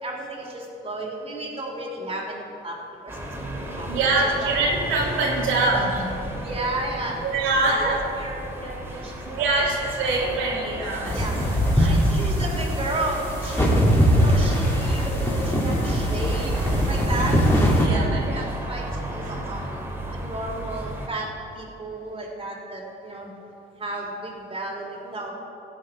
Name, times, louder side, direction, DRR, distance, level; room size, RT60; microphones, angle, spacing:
voice 1, 0.0-2.8 3.0-3.2 3.8-3.9 4.2-4.5 6.3-7.2 7.6-9.5 11.1-11.3 11.8-13.7 14.0-16.5 16.8-17.4 17.9-18.0 18.3-18.8 19.1-19.8 20.1-21.3 21.5-23.3 23.8-25.3, right 2 dB, 30° right, -2 dB, 2.8 m, -33 dB
sound 1, 3.1-21.1, right 1 dB, 10° right, 2.3 m, -35 dB
voice 2, 3.9-6.3 7.2-8.0 9.2-12.0 13.9-14.2 17.8-18.5 19.2-19.4, right 3 dB, 85° right, -5 dB, 2.6 m, -25 dB
sound 2, 11.0-17.8, equal, 10° left, 3.0 m, -21 dB
17.0 x 7.7 x 4.7 m, 2.8 s
cardioid pair, 90°, 20 cm